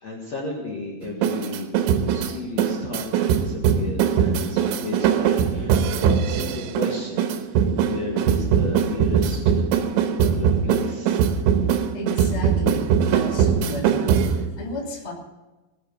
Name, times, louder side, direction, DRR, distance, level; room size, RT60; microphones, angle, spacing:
voice 1, 0.0-1.7 2.1-9.6 10.1-11.2, left 3 dB, 60° left, -2 dB, 1.8 m, -34 dB
sound 1, 1.0-14.5, right 7 dB, 75° right, 3.2 m, -21 dB
voice 2, 11.9-14.2 14.6-15.1, equal, 25° left, -2 dB, 0.8 m, -32 dB
20.0 x 8.0 x 7.1 m, 1.1 s
omnidirectional pair, 6.0 m